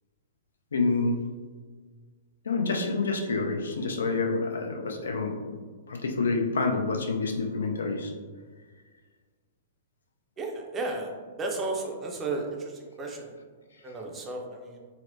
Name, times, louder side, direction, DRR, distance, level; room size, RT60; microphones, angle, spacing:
voice 1, 0.7-1.2 2.4-5.4 5.9-8.1, left 3 dB, 65° left, 1 dB, 0.4 m, -27 dB
voice 2, 10.4-11.1 11.4-13.3 13.8-14.8, right 3 dB, 20° right, 0 dB, 0.5 m, -33 dB
4.1 x 2.0 x 2.6 m, 1.5 s
figure-of-eight pair, 105°, 0 cm